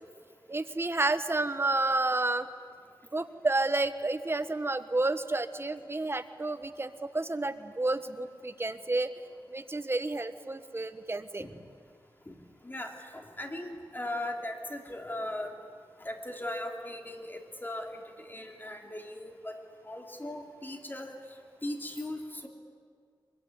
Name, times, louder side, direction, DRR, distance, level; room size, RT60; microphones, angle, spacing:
voice 1, 0.5-2.5 3.1-9.1 9.5-11.5, right 2 dB, 30° right, 10 dB, 1.3 m, -30 dB
voice 2, 12.6-15.5 16.0-19.6 19.9-21.2 21.6-22.5, left 1 dB, 25° left, 3 dB, 3.1 m, -38 dB
23.5 x 22.0 x 9.7 m, 2.2 s
wide cardioid pair, 75°, 8 cm